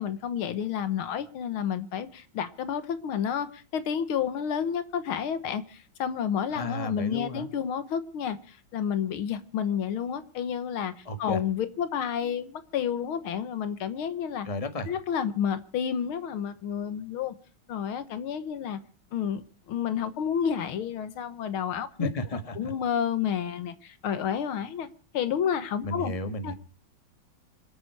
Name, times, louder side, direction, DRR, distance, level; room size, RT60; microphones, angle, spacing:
voice 1, 0.0-14.5 14.9-17.3 17.7-18.8 19.1-22.1 22.6-24.9 25.1-26.1 26.4-26.5, left 8 dB, 75° left, 13 dB, 1.9 m, -30 dB
voice 2, 6.5-7.5 11.0-11.4 14.4-14.9 22.0-22.7 25.8-26.5, left 1 dB, 20° left, 9 dB, 1.5 m, -33 dB
26.5 x 8.8 x 4.6 m, 0.40 s
omnidirectional pair, 2.3 m